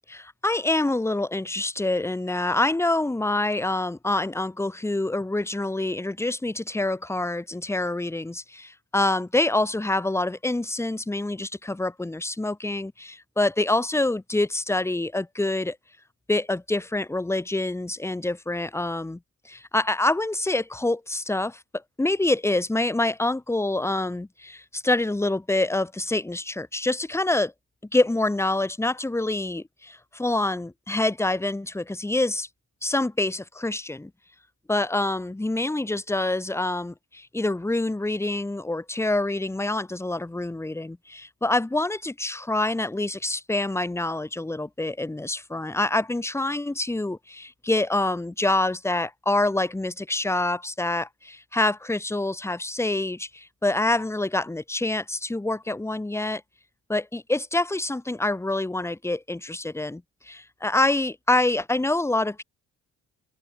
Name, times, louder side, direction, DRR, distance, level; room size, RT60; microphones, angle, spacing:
voice 1, 0.1-15.8 16.3-19.2 19.4-21.6 22.0-27.5 27.9-32.5 32.8-34.1 34.7-56.4 56.9-62.4, left 2 dB, 10° left, 1.0 m, -26 dB
open air
cardioid pair, 90°, 30 cm